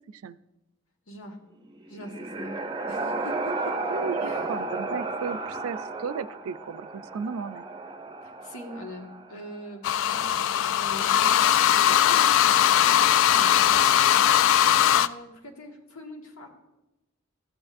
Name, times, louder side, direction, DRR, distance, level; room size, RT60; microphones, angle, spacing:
voice 1, 0.1-0.4 3.9-7.7, right 6 dB, 85° right, 15 dB, 0.4 m, -35 dB
voice 2, 1.1-1.4 1.9-3.7 4.2-4.5 8.2-13.9 14.8-16.5, left 1 dB, 85° left, 2 dB, 1.6 m, -43 dB
sound 1, 1.7-9.5, right 3 dB, 20° right, 0.6 m, -33 dB
sound 2, 9.8-15.1, left 10 dB, 65° left, 0.3 m, -20 dB
13.5 x 8.7 x 2.5 m, 0.95 s
head